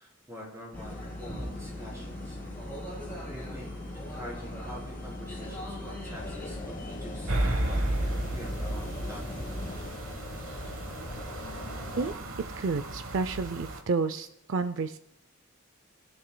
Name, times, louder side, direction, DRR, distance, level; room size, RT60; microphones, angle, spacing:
voice 1, 0.0-2.4 3.3-9.2, equal, 15° right, -3 dB, 3.4 m, -45 dB
sound 1, 0.7-9.9, left 1 dB, 10° left, 4.0 m, -40 dB
sound 2, 6.1-12.2, left 2 dB, 40° left, 1.0 m, -42 dB
sound 3, 7.3-13.8, right 1 dB, 80° right, 1.2 m, -33 dB
voice 2, 12.6-15.0, right 4 dB, 60° right, 11 dB, 0.4 m, -30 dB
20.5 x 10.0 x 2.2 m, 0.77 s
head